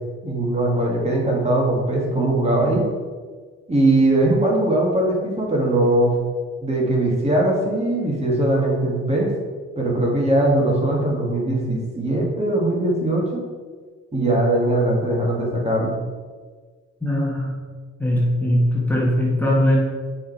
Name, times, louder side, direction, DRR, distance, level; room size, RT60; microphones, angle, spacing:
voice 1, 0.2-2.8 3.7-6.2 6.6-9.3 9.8-13.4 14.1-15.9, right 1 dB, 20° right, -2 dB, 2.0 m, -20 dB
voice 2, 17.0-17.5 18.0-19.8, left 1 dB, 5° left, -4 dB, 1.7 m, -20 dB
7.4 x 5.2 x 4.6 m, 1.5 s
cardioid pair, 90°, 30 cm